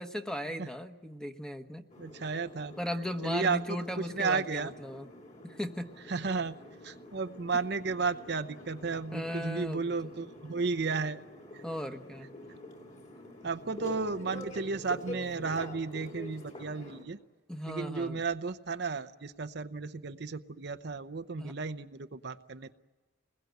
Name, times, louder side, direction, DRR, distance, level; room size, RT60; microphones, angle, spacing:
voice 1, 0.0-1.9 2.8-5.1 5.4-5.9 9.1-9.9 11.6-12.3 17.5-18.2 21.4-21.5, equal, 5° left, 7 dB, 1.1 m, -37 dB
sound 1, 1.9-17.0, left 1 dB, 40° left, 3.7 m, -47 dB
voice 2, 2.0-2.8 3.2-3.6 4.0-4.7 6.1-6.6 6.8-11.2 11.5-11.6 13.4-17.2 17.7-22.7, right 4 dB, 60° right, 9 dB, 0.7 m, -33 dB
28.0 x 21.0 x 9.3 m, 1.3 s
head